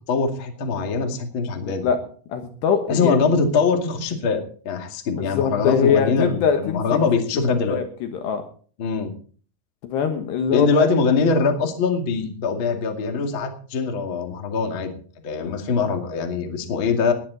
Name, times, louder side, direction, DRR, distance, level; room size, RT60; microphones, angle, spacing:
voice 1, 0.1-1.9 2.9-7.8 8.8-9.1 10.5-15.0 15.2-17.1, left 4 dB, 45° left, 3 dB, 1.7 m, -22 dB
voice 2, 1.6-2.0 2.3-3.2 5.1-7.0 7.6-8.5 9.8-10.9 15.4-15.5, left 7 dB, 70° left, 6 dB, 2.9 m, -23 dB
20.0 x 10.5 x 4.1 m, 0.43 s
omnidirectional pair, 6.0 m